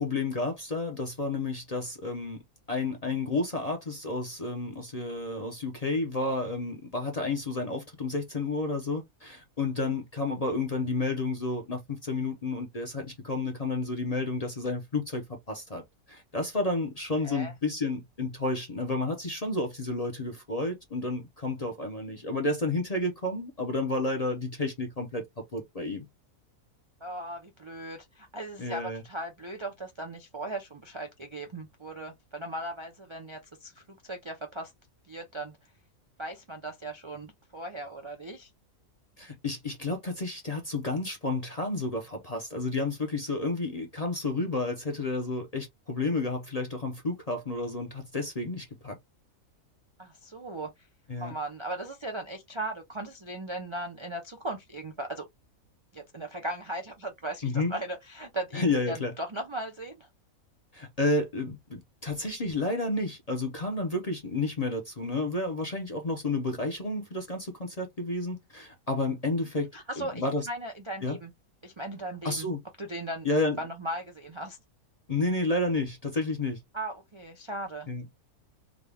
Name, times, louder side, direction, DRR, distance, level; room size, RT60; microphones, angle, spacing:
voice 1, 0.0-2.4 2.7-15.8 16.1-25.2 25.5-26.1 28.6-29.0 39.2-49.0 51.1-51.3 57.4-57.8 58.5-59.1 60.7-69.7 70.0-70.5 71.0-71.2 72.2-72.6 73.2-73.6 75.1-76.6 77.9-78.1, left 2 dB, 35° left, 0.6 m, -31 dB
voice 2, 27.0-34.7 35.1-35.6 36.2-38.5 50.0-50.7 51.2-55.3 55.9-60.1 69.7-71.3 71.6-72.5 72.8-73.3 73.6-74.6 76.7-77.9, right 1 dB, 40° right, 0.4 m, -38 dB
3.7 x 2.3 x 3.3 m
omnidirectional pair, 1.5 m